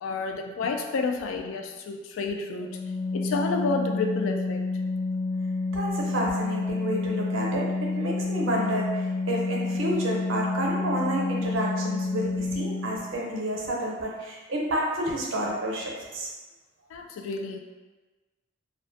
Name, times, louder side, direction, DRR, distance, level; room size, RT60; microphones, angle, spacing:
voice 1, 0.0-2.8 3.1-4.8 16.9-17.6, left 3 dB, 85° left, 5 dB, 0.3 m, -30 dB
Organ, 2.6-13.1, left 3 dB, 25° left, 0.5 m, -29 dB
voice 2, 5.7-16.3, right 1 dB, 80° right, -2 dB, 0.6 m, -30 dB
2.5 x 2.2 x 2.5 m, 1.2 s
head